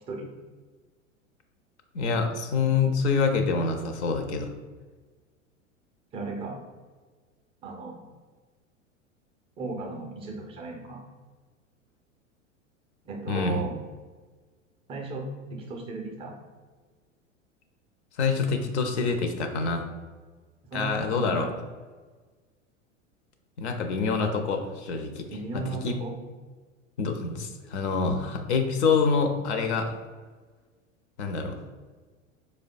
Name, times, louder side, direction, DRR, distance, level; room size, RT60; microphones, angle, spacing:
voice 1, 1.9-4.5 13.3-13.7 18.2-19.9 20.7-21.5 23.6-25.2 25.5-26.0 27.0-29.9 31.2-31.6, left 4 dB, 60° left, 5 dB, 0.6 m, -26 dB
voice 2, 6.1-6.6 7.6-8.0 9.6-11.0 13.0-13.7 14.9-15.3 15.5-16.3 20.6-21.5 25.3-26.2, right 3 dB, 15° right, 1 dB, 0.3 m, -35 dB
4.7 x 2.2 x 2.5 m, 1.4 s
figure-of-eight pair, 90°, 39 cm